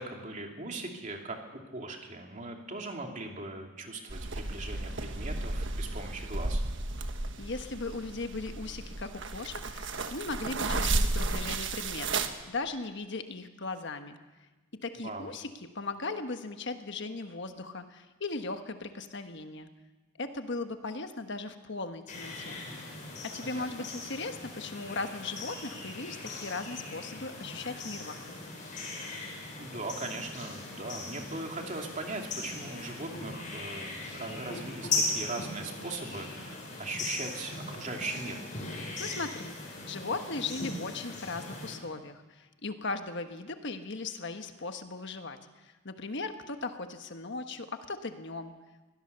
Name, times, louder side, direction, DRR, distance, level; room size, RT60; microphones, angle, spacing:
voice 1, 0.0-1.4 1.7-6.6 15.0-15.3 23.4-23.9 29.6-38.4, right 2 dB, 35° right, 2 dB, 2.7 m, -39 dB
sound 1, 4.1-12.3, right 2 dB, 60° right, 1.4 m, -33 dB
voice 2, 7.4-14.2 14.8-15.5 15.7-19.7 20.2-22.6 23.2-28.3 39.0-48.5, left 3 dB, 55° left, 7 dB, 1.3 m, -38 dB
sound 2, 22.1-41.7, left 2 dB, 35° left, 5.4 m, -39 dB
22.5 x 17.0 x 6.9 m, 1.2 s
head